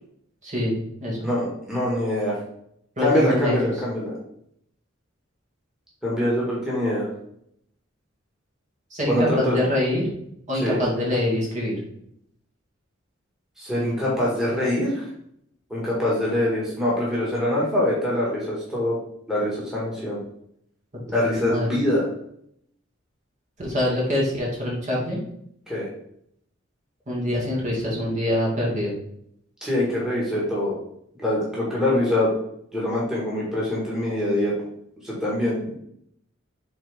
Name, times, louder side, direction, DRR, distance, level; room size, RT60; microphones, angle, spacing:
voice 1, 0.4-0.7 1.0-1.2 3.0-3.7 8.9-10.0 10.5-11.8 21.1-21.7 23.6-25.2 27.1-28.9, left 1 dB, 40° right, -4 dB, 2.4 m, -25 dB
voice 2, 1.2-2.4 3.0-4.1 6.0-7.1 9.1-9.6 10.5-10.8 13.6-15.0 15.7-19.0 19.3-20.2 21.1-22.0 25.7-25.9 29.6-30.8 31.2-32.3 32.7-34.5 35.0-35.8, left 1 dB, 5° right, -6 dB, 1.9 m, -24 dB
7.4 x 4.1 x 3.6 m, 0.71 s
head